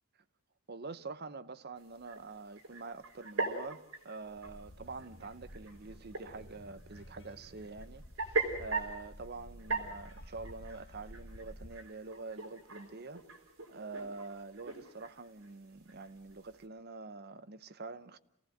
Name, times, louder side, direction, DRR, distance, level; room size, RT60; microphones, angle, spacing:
voice 1, 0.7-13.2 13.7-18.2, right 3 dB, 45° right, 0.8 m, -46 dB
sound 1, 1.8-16.7, right 3 dB, 65° right, 4.1 m, -42 dB
sound 2, 4.2-11.7, equal, 60° left, 4.1 m, -52 dB
27.5 x 17.0 x 7.8 m
head